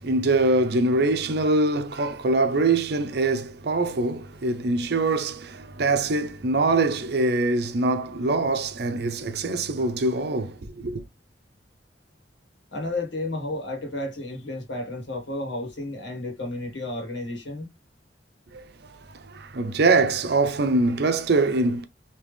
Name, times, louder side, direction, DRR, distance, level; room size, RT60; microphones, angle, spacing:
voice 1, 0.0-11.0 18.5-18.7 19.3-21.8, right 2 dB, 60° right, 0.6 m, -23 dB
voice 2, 12.7-17.7, left 2 dB, 80° left, 1.6 m, -32 dB
3.4 x 2.9 x 3.3 m
head